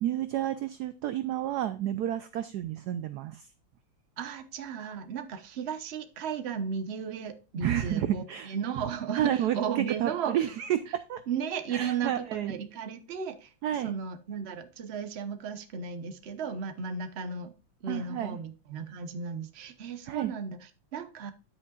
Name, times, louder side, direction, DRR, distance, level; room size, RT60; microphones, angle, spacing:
voice 1, 0.0-3.5 7.6-8.5 9.1-11.2 11.7-12.5 13.6-13.9 17.9-18.4 20.1-20.3, right 11 dB, 75° right, 12 dB, 0.9 m, -30 dB
voice 2, 4.2-10.4 11.3-17.5 17.8-20.6 20.9-21.3, right 6 dB, 45° right, 9 dB, 0.9 m, -35 dB
10.0 x 8.4 x 2.4 m, 0.30 s
omnidirectional pair, 2.2 m